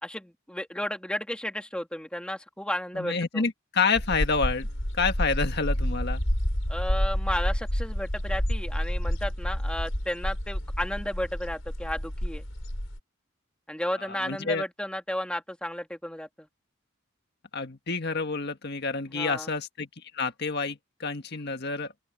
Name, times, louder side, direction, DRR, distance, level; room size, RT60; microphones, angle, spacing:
voice 1, 0.0-3.4 6.7-12.4 13.7-16.5 19.1-19.5, left 1 dB, 5° left, 2.4 m, -33 dB
voice 2, 2.9-4.7 5.0-6.2 14.0-14.6 17.5-19.9 20.1-21.9, left 4 dB, 55° left, 1.7 m, -28 dB
sound 1, 3.9-13.0, equal, 80° left, 6.1 m, -29 dB
open air
head